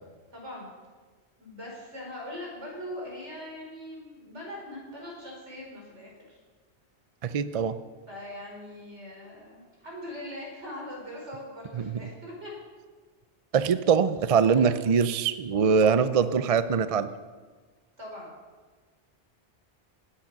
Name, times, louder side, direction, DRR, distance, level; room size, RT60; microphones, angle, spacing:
voice 1, 0.3-0.7 1.4-6.4 8.1-12.5 14.5-14.6 15.6-15.9 18.0-18.3, left 1 dB, 80° right, -3 dB, 4.9 m, -41 dB
voice 2, 7.2-7.7 11.7-11.9 13.5-17.1, right 6 dB, 45° right, 13 dB, 0.5 m, -23 dB
19.5 x 8.7 x 5.9 m, 1.4 s
omnidirectional pair, 1.2 m